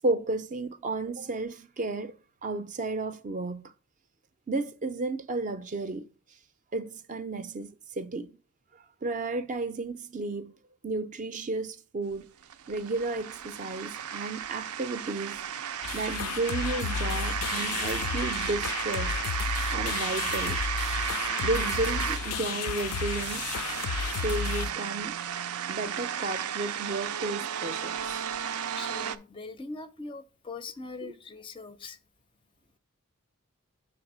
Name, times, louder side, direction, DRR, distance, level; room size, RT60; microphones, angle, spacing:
voice 1, 0.0-2.1 2.4-3.7 4.5-6.1 6.7-8.3 9.0-10.5 10.8-12.3 12.7-15.4 15.9-19.2 19.7-20.6 21.4-23.6 24.0-25.1 25.7-28.2 31.0-31.1, right 2 dB, 35° right, 0.4 m, -33 dB
sound 1, 12.1-29.2, right 9 dB, 90° right, 0.5 m, -34 dB
sound 2, 15.8-24.7, left 7 dB, 85° left, 0.3 m, -33 dB
voice 2, 28.8-32.0, left 3 dB, 25° left, 0.4 m, -41 dB
7.1 x 3.4 x 6.0 m
head